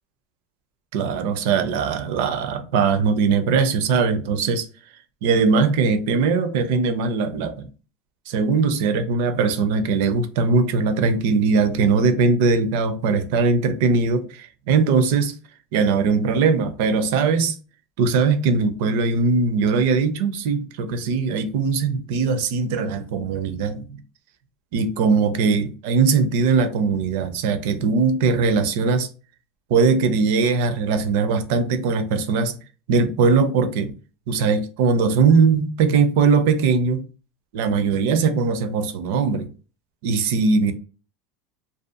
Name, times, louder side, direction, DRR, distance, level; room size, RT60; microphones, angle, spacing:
voice 1, 0.9-4.7 5.2-7.7 8.3-15.4 15.7-17.6 18.0-23.9 24.7-29.1 29.7-32.6 32.9-33.9 34.3-37.1 37.5-39.5 40.0-40.7, right 5 dB, 65° right, 0.5 m, -20 dB
2.7 x 2.2 x 2.4 m
cardioid pair, 170°, 0 cm